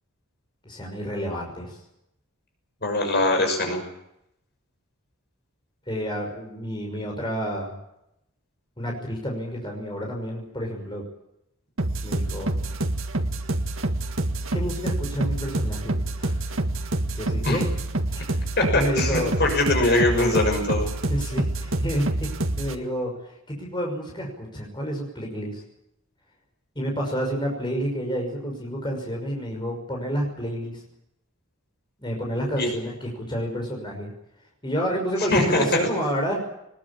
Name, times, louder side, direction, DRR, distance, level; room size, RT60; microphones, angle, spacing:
voice 1, 0.6-1.8 5.9-7.8 8.8-11.0 12.0-12.6 14.5-16.5 17.1-17.6 18.1-19.3 21.1-22.3 22.6-25.6 26.7-30.8 32.0-34.1 34.6-36.4, equal, 20° left, 0 dB, 5.9 m, -29 dB
voice 2, 2.8-3.8 17.4-17.6 18.6-20.9 32.6-32.7 35.3-35.8, left 2 dB, 50° left, 3 dB, 6.2 m, -22 dB
sound 1, 11.8-22.8, right 1 dB, 65° right, 1.7 m, -27 dB
21.5 x 20.5 x 8.7 m, 0.82 s
head